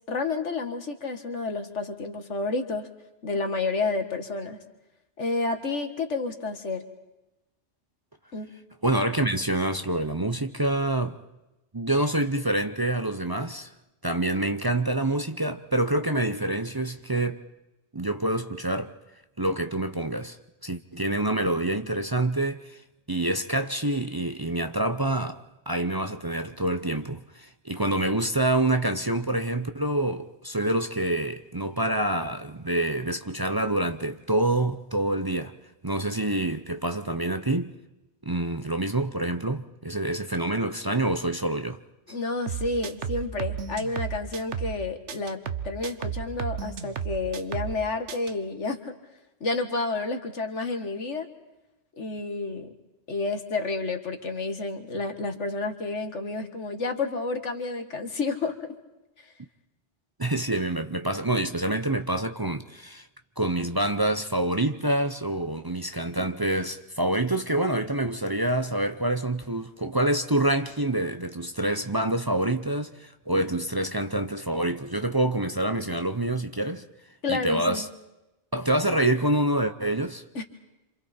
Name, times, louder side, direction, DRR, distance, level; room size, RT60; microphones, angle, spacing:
voice 1, 0.1-2.9 3.2-4.6 5.2-6.8 8.3-8.5 42.1-45.4 45.6-48.9 49.4-51.3 52.0-52.7 53.1-58.7 59.2-59.3 77.2-77.8 80.4-80.5, left 3 dB, 90° left, 2.1 m, -30 dB
voice 2, 8.8-11.2 11.7-13.7 14.0-17.4 17.9-19.0 19.4-20.4 20.6-22.8 23.1-35.5 35.8-37.7 38.2-41.8 42.1-42.2 60.2-63.1 63.4-76.8 77.3-77.9 78.5-80.2, right 1 dB, 25° right, 0.7 m, -27 dB
sound 1, 42.5-44.8 45.1-47.8 48.1-48.3, right 7 dB, 90° right, 1.3 m, -33 dB
28.5 x 27.0 x 4.4 m
omnidirectional pair, 1.2 m